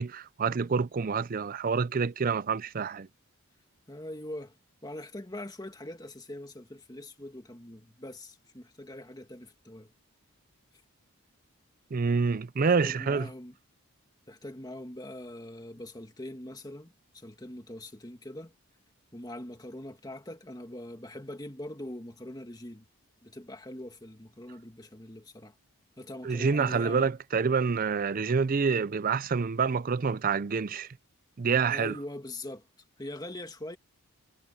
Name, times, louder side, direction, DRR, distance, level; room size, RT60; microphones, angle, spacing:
voice 1, 0.0-3.1 11.9-13.3 26.2-30.9 31.4-32.0, right 5 dB, 40° right, 0.4 m, -27 dB
voice 2, 3.9-4.6 4.8-9.9 12.6-13.6 14.3-18.5 19.1-22.9 23.2-25.5 26.0-27.1 31.7-32.7 33.0-33.8, left 1 dB, 15° left, 1.7 m, -42 dB
head